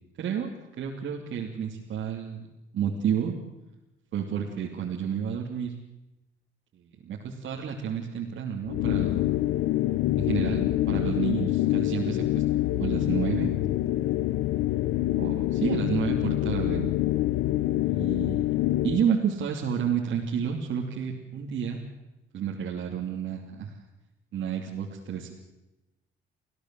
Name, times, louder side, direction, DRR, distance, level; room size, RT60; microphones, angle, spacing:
voice 1, 0.2-2.4 2.7-3.3 4.1-5.7 7.0-9.3 10.2-12.4 12.7-13.5 15.2-16.9 17.9-18.5 18.8-21.8 22.3-23.8 24.3-25.3, right 7 dB, 70° right, -2 dB, 3.0 m, -30 dB
sound 1, 8.7-19.1, left 15 dB, 80° left, 0.8 m, -26 dB
26.0 x 16.0 x 7.7 m, 0.99 s
cardioid pair, 90°, 20 cm